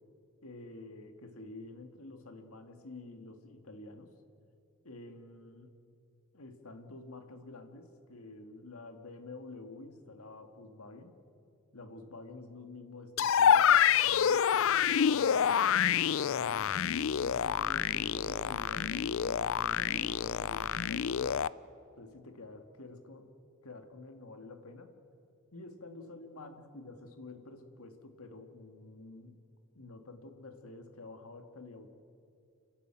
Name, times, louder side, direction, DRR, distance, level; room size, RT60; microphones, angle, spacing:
voice 1, 0.4-4.1 4.8-5.7 6.3-11.1 11.7-16.8 17.2-21.5 22.0-23.3 23.6-24.9 25.5-29.4 29.7-31.9, left 2 dB, 85° left, 6 dB, 2.0 m, -49 dB
sound 1, 13.2-21.5, left 8 dB, 65° left, 0.4 m, -27 dB
30.0 x 12.5 x 9.0 m, 2.7 s
head